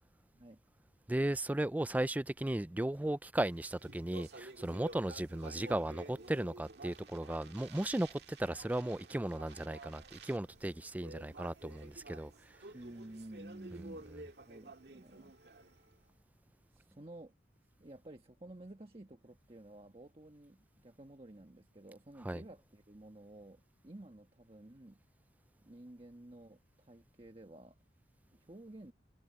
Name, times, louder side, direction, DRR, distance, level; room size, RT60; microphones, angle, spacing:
voice 1, 1.1-12.6 13.7-13.8 22.2-22.4, right 1 dB, 10° right, 0.3 m, -36 dB
Speech, 3.6-16.0, right 2 dB, 70° right, 1.9 m, -52 dB
sound 1, 6.6-15.3, right 1 dB, 90° right, 7.5 m, -73 dB
voice 2, 12.7-14.1 14.5-15.3 15.6-15.7 16.7-17.3 17.8-25.0 25.6-27.8 28.3-28.9, right 1 dB, 30° right, 1.3 m, -52 dB
head